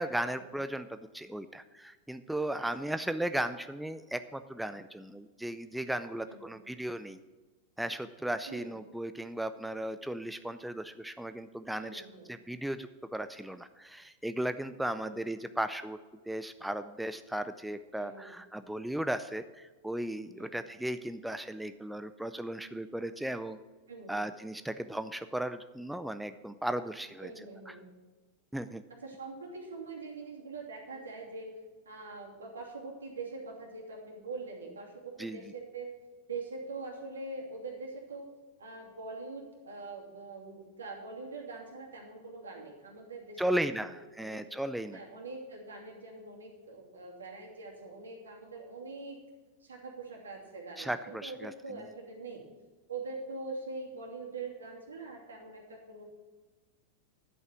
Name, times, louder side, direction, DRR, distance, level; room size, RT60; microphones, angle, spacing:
voice 1, 0.0-7.2 7.8-16.0 16.3-23.6 24.1-27.8 28.5-28.8 35.2-35.4 43.4-45.0 50.8-51.8, right 1 dB, 5° right, 11 dB, 0.4 m, -36 dB
voice 2, 6.3-6.7 8.5-8.7 11.8-12.2 15.0-15.2 18.0-18.3 20.4-20.6 23.9-24.1 27.2-27.9 29.0-31.5 31.8-35.9 36.3-38.3 38.6-43.9 44.2-44.4 44.9-49.2 49.6-52.4 52.9-56.0, right 3 dB, 70° right, -1 dB, 2.8 m, -43 dB
11.0 x 8.0 x 6.0 m, 1.3 s
figure-of-eight pair, 90°, 0 cm